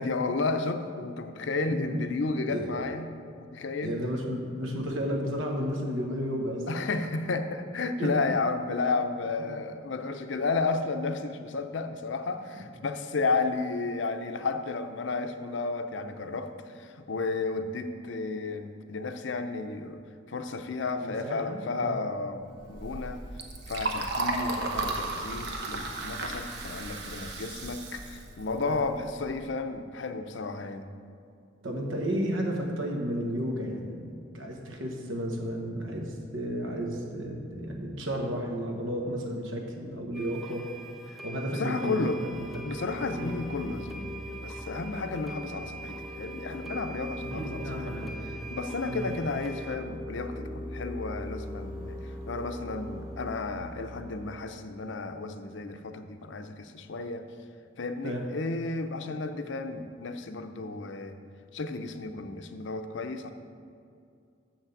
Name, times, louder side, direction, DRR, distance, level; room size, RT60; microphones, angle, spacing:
voice 1, 0.0-3.1 3.4-4.0 6.7-20.0 20.3-23.2 23.7-30.9 41.1-41.2 41.5-42.2 42.6-44.1 44.4-48.1 48.5-52.0 52.3-57.2 57.8-61.2 61.5-63.3, left 3 dB, 70° left, 8 dB, 0.6 m, -32 dB
voice 2, 1.7-2.0 2.4-2.7 3.8-6.9 8.0-8.1 9.4-9.5 12.5-12.6 21.0-22.0 28.6-28.8 31.6-40.7 41.2-42.7 43.1-43.4 47.2-48.3 48.9-49.2 58.0-58.2, equal, 80° right, 1 dB, 1.2 m, -33 dB
Liquid, 22.6-29.2, right 2 dB, 55° right, 1.0 m, -34 dB
sound 1, 40.1-49.8, right 3 dB, ahead, 0.5 m, -44 dB
sound 2, 42.3-54.3, left 1 dB, 20° right, 1.6 m, -41 dB
7.2 x 5.9 x 6.9 m, 2.5 s
head